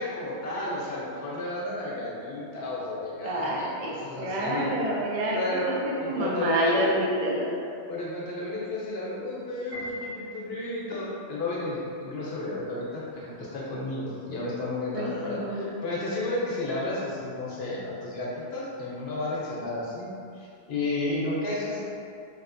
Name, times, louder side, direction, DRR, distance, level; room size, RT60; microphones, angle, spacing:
voice 1, 0.0-4.7 5.3-6.9 7.9-21.8, left 2 dB, 60° left, -6 dB, 1.0 m, -32 dB
voice 2, 3.2-3.9 4.2-5.8 6.0-7.5 14.9-15.7, right 1 dB, 60° right, -3 dB, 0.3 m, -28 dB
Piano, 9.7-11.0, left 1 dB, 20° right, 1.2 m, -40 dB
3.3 x 2.7 x 2.5 m, 2.4 s
omnidirectional pair, 1.2 m